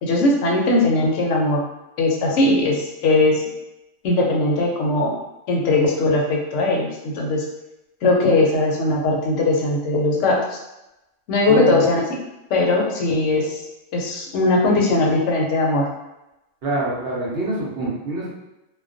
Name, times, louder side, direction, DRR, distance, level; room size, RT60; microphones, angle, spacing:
voice 1, 0.0-1.6 2.0-3.4 4.0-5.1 5.5-7.5 8.0-10.6 11.3-12.0 12.5-13.6 13.9-15.9, left 2 dB, 70° left, -1 dB, 0.9 m, -19 dB
voice 2, 11.5-11.9 16.6-18.4, right 3 dB, 60° right, -6 dB, 0.7 m, -24 dB
2.3 x 2.1 x 2.4 m, 0.95 s
omnidirectional pair, 1.3 m